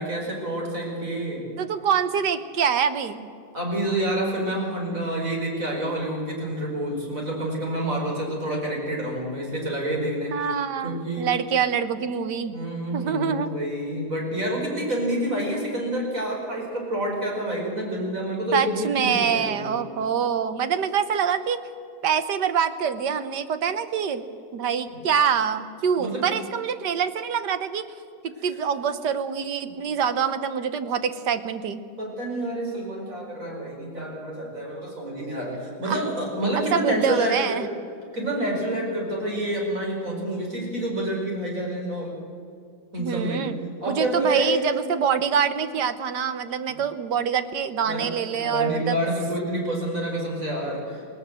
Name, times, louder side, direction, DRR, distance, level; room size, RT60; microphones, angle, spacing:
voice 1, 0.0-1.4 3.5-10.5 10.8-11.3 12.5-19.8 24.9-25.0 26.0-26.2 32.0-37.4 38.1-42.2 42.9-43.4 43.8-44.6 46.7-46.8 47.8-48.1 48.4-51.1, right 1 dB, 50° right, -1 dB, 5.6 m, -28 dB
voice 2, 1.6-3.3 10.3-12.5 12.9-13.5 18.5-21.6 22.0-24.2 24.5-27.9 28.2-31.8 35.9-36.0 36.7-37.7 43.0-43.6 43.9-49.0, right 7 dB, 80° right, 11 dB, 1.7 m, -25 dB
19.5 x 19.0 x 7.7 m, 2.4 s
omnidirectional pair, 1.8 m